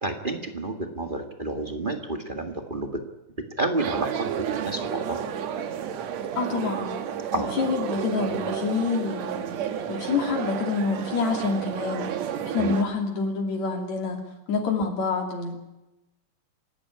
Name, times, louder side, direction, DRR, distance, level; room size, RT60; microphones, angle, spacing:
voice 1, 0.0-3.0 3.6-5.2 7.3-7.5 12.6-12.7, right 2 dB, 25° right, 5 dB, 1.3 m, -30 dB
sound 1, 3.8-12.8, right 8 dB, 65° right, 2.3 m, -31 dB
voice 2, 6.4-6.9 7.4-9.4 9.9-14.2 14.5-15.6, left 4 dB, 60° left, 2 dB, 3.8 m, -27 dB
27.0 x 12.5 x 9.9 m, 1.0 s
omnidirectional pair, 3.6 m